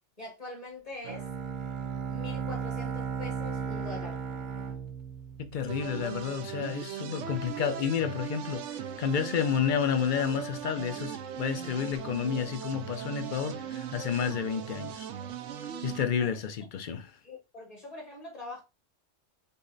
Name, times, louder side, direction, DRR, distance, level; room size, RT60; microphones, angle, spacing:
voice 1, 0.2-1.3 2.1-4.2 16.2-16.3 17.2-18.6, left 2 dB, 30° left, 1.4 m, -43 dB
Bowed string instrument, 1.0-6.0, right 6 dB, 50° right, 0.7 m, -35 dB
voice 2, 5.5-8.7 9.0-15.1 15.8-17.1, left 7 dB, 50° left, 0.6 m, -30 dB
sound 1, 5.7-16.1, right 9 dB, 90° right, 0.9 m, -39 dB
5.6 x 2.1 x 3.9 m
omnidirectional pair, 1.2 m